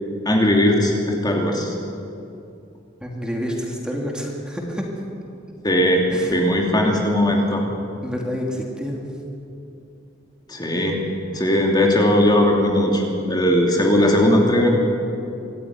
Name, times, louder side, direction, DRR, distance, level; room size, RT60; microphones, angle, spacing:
voice 1, 0.2-1.7 5.6-6.0 6.3-7.6 10.5-11.0 11.3-14.7, left 1 dB, 20° left, 0 dB, 2.8 m, -18 dB
voice 2, 3.0-4.9 6.1-6.4 8.0-9.0 11.3-11.4, equal, 5° right, -1 dB, 2.8 m, -28 dB
25.5 x 15.0 x 9.6 m, 2.6 s
head